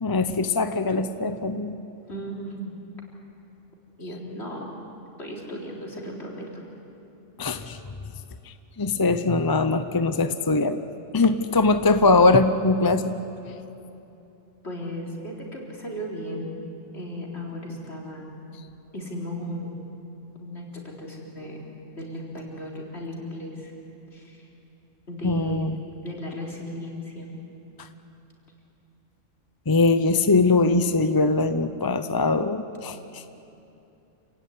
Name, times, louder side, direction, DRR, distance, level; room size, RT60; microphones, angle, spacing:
voice 1, 0.0-1.8 7.4-7.8 8.8-10.8 11.1-13.2 25.2-25.8 29.7-33.0, left 3 dB, 25° left, 10 dB, 0.6 m, -21 dB
voice 2, 2.1-2.7 4.0-4.7 5.2-6.5 14.6-16.5 16.9-18.3 18.9-19.7 20.4-21.6 21.9-23.7 24.1-24.4 25.1-25.7 26.0-27.3, equal, 60° left, -2 dB, 4.1 m, -36 dB
28.5 x 16.5 x 9.7 m, 2.9 s
omnidirectional pair, 1.3 m